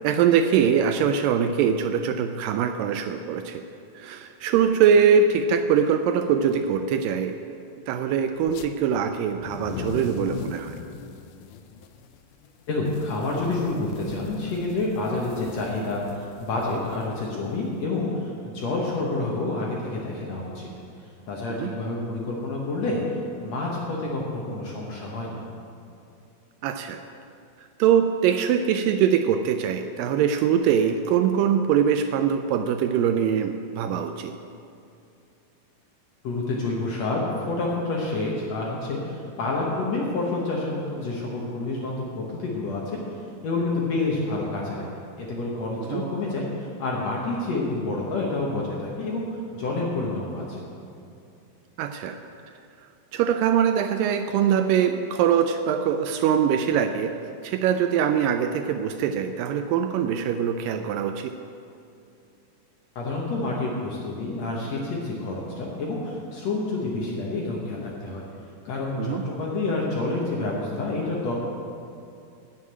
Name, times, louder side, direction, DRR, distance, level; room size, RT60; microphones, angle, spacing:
voice 1, 0.0-3.6 4.0-7.4 7.9-10.8 21.6-21.7 26.6-27.0 27.8-34.3 45.9-46.0 51.8-52.2 53.1-57.2 57.4-61.4 69.0-69.2, right 7 dB, 85° right, 8 dB, 2.0 m, -22 dB
sound 1, 8.4-8.7 9.3-17.8, left 7 dB, 85° left, 1.8 m, -41 dB
voice 2, 12.7-20.7 21.0-23.0 23.3-25.4 36.2-49.3 49.5-50.7 63.0-68.2 68.7-71.3, left 2 dB, 60° left, -3 dB, 1.9 m, -28 dB
9.7 x 7.4 x 8.7 m, 2.5 s
omnidirectional pair, 4.4 m